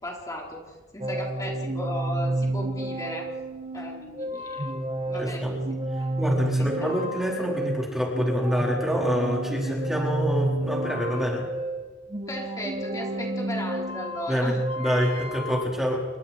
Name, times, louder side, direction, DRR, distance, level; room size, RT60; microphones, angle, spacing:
voice 1, 0.0-0.6 0.9-3.3 3.7-4.7 5.1-5.6 6.6-6.7 12.3-14.6, equal, 20° left, -2 dB, 4.3 m, -35 dB
sound 1, 1.0-15.6, right 1 dB, 30° right, 1.3 m, -30 dB
voice 2, 5.2-5.5 6.2-11.5 14.3-16.0, equal, ahead, -3 dB, 4.4 m, -26 dB
29.5 x 24.5 x 4.5 m, 1.3 s
head